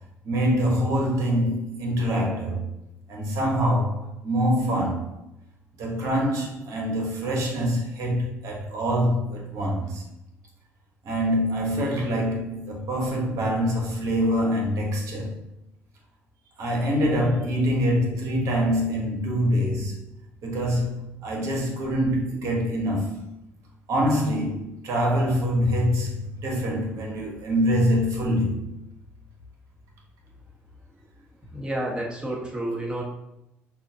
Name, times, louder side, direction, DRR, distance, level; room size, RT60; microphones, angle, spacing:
voice 1, 0.2-2.7 3.1-5.1 5.8-10.0 11.0-15.3 16.6-20.0 20.4-23.2 23.9-28.7, equal, 65° right, 1.2 m, -25 dB
voice 2, 31.5-33.0, right 1 dB, 15° right, 1.4 m, -30 dB
5.5 x 2.4 x 2.7 m
supercardioid pair, 65°, 6 cm